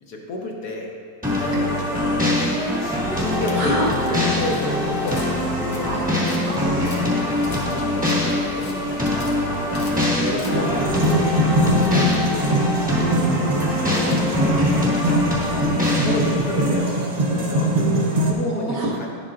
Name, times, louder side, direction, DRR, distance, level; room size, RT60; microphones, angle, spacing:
voice 1, 0.0-0.9 1.2-5.9 6.4-6.9 7.2-9.3 10.1-13.5 13.9-15.3 16.0-17.1 17.3-17.7 18.2-19.1, left 2 dB, 65° left, 0 dB, 1.3 m, -31 dB
sound 1, 1.2-16.8, left 1 dB, 5° right, 1.0 m, -23 dB
sound 2, 3.1-14.7, left 2 dB, 80° left, 1.6 m, -38 dB
voice 2, 3.5-4.1 5.9-6.7 15.3-16.4 18.5-19.0, right 1 dB, 60° right, -4 dB, 1.6 m, -29 dB
sound 3, 10.5-18.3, right 1 dB, 80° right, 0.3 m, -22 dB
10.5 x 7.4 x 2.5 m, 2.1 s
omnidirectional pair, 1.9 m